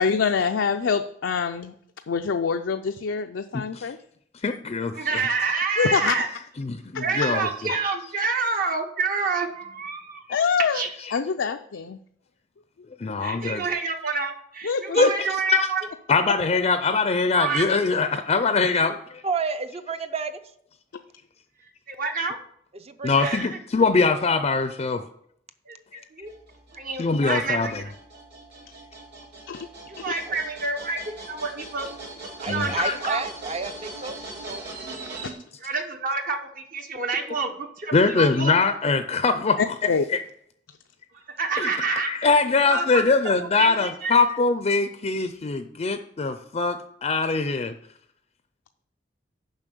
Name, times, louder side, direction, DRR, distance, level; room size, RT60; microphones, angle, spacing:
voice 1, 0.0-1.7 2.1-4.0 5.8-6.2 6.9-7.0 10.3-10.8 11.1-12.0 14.6-15.1 29.5-29.7 30.0-30.1 35.2-35.3 39.6-40.1, left 5 dB, 90° left, 6 dB, 0.4 m, -25 dB
voice 2, 3.5-3.9 4.4-5.8 6.6-7.5 13.0-13.6 15.0-15.1 15.5-15.7 16.1-18.9 23.0-25.0 25.9-26.0 27.0-27.8 32.5-32.9 37.9-39.6 40.1-40.2 41.6-47.7, left 4 dB, 35° left, 9 dB, 0.5 m, -23 dB
voice 3, 4.9-6.3 7.0-10.2 10.7-10.9 13.2-15.9 17.3-17.7 21.9-22.4 23.2-23.5 25.7-25.8 26.1-26.3 26.7-27.7 29.9-31.9 32.4-33.2 35.6-38.6 41.3-42.1 42.7-44.2, right 4 dB, 50° right, 5 dB, 1.0 m, -28 dB
voice 4, 19.2-20.4 22.7-23.4 30.3-30.4 32.4-34.7, right 5 dB, 35° right, 10 dB, 0.6 m, -31 dB
sound 1, 26.3-35.3, right 2 dB, 65° right, 3.1 m, -40 dB
7.2 x 5.5 x 6.8 m, 0.68 s
head